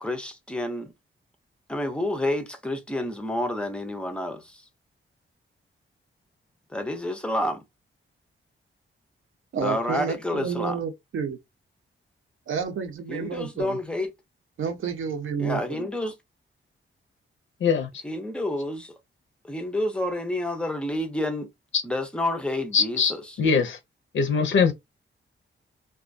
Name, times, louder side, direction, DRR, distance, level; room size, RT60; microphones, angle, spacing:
voice 1, 0.0-0.9 1.7-4.6 6.7-7.6 9.5-10.8 13.1-14.1 15.4-16.1 18.0-18.9 19.4-21.5 21.8-23.4, left 1 dB, 5° left, 0.4 m, -29 dB
voice 2, 9.5-11.4 12.5-13.8 14.6-15.9, right 6 dB, 70° right, 0.7 m, -30 dB
voice 3, 22.7-23.8 24.1-24.7, left 5 dB, 65° left, 0.5 m, -22 dB
2.3 x 2.2 x 2.5 m
wide cardioid pair, 155°, 21 cm